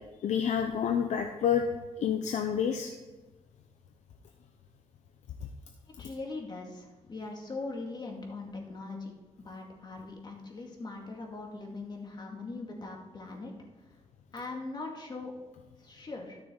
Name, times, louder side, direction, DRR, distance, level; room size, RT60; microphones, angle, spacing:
voice 1, 0.2-1.7 2.0-2.9, left 8 dB, 75° left, 5 dB, 0.7 m, -28 dB
voice 2, 6.0-9.1 9.4-13.5 14.3-15.3 15.8-16.4, left 3 dB, 35° left, 0 dB, 2.3 m, -41 dB
13.0 x 6.7 x 4.0 m, 1.2 s
cardioid pair, 105°, 12 cm